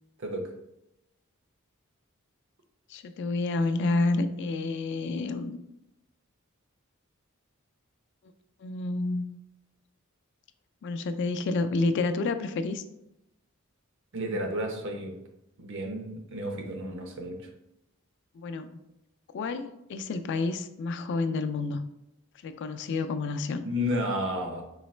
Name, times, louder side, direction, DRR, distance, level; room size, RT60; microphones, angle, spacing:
voice 1, 2.9-5.6 8.6-9.3 10.8-12.8 18.4-18.8 19.3-21.8 22.4-23.6, left 3 dB, 55° left, 10 dB, 0.3 m, -29 dB
voice 2, 14.1-15.1 15.6-17.4 23.6-24.6, equal, 65° right, 3 dB, 0.7 m, -32 dB
4.0 x 3.1 x 3.1 m, 0.87 s
head